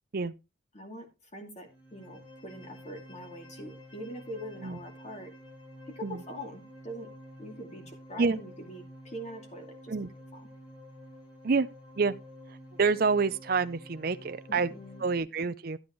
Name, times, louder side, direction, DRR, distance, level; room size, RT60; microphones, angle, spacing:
voice 1, 0.7-5.3 5.8-7.1 7.4-9.9 10.3-10.5 14.5-15.0, equal, 35° left, 2.5 m, -43 dB
sound 1, 1.6-15.2, equal, 80° left, 5.1 m, -50 dB
voice 2, 12.5-14.7 15.0-15.8, right 4 dB, 45° right, 0.5 m, -27 dB
13.0 x 8.5 x 3.1 m
head